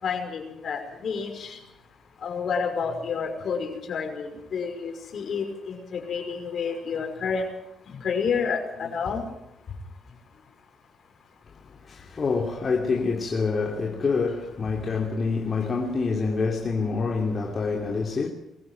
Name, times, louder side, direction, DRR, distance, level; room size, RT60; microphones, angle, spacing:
voice 1, 0.0-1.6 2.2-7.4 7.9-9.2, left 6 dB, 60° left, 5.5 m, -29 dB
voice 2, 11.8-18.3, left 4 dB, 40° left, 2.8 m, -26 dB
22.5 x 14.5 x 9.2 m
cardioid pair, 90°, 0 cm